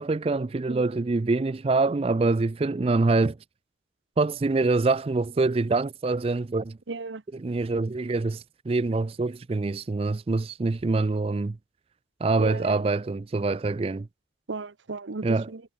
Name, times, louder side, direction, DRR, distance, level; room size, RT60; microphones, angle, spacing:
voice 1, 0.0-3.4 4.2-6.8 7.3-11.6 12.2-14.1 15.2-15.5, right 3 dB, 30° right, 0.4 m, -25 dB
voice 2, 6.9-7.2 12.4-12.8 14.5-15.6, right 3 dB, 85° right, 0.9 m, -34 dB
head